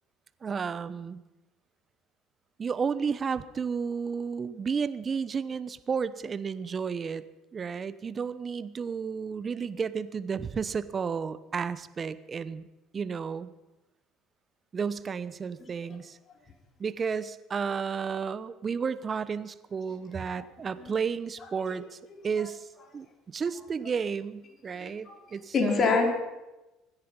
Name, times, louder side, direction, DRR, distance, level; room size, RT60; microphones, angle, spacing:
voice 1, 0.4-1.2 2.6-7.2 7.5-12.7 12.9-13.5 14.7-16.2 16.8-22.0 22.2-22.7 22.9-23.1 23.3-26.0, right 6 dB, 35° right, 15 dB, 1.0 m, -32 dB
voice 2, 24.8-25.2 25.5-26.1, left 4 dB, 40° left, 2 dB, 4.1 m, -26 dB
25.0 x 10.5 x 5.4 m, 1.0 s
hypercardioid pair, 70°, 0 cm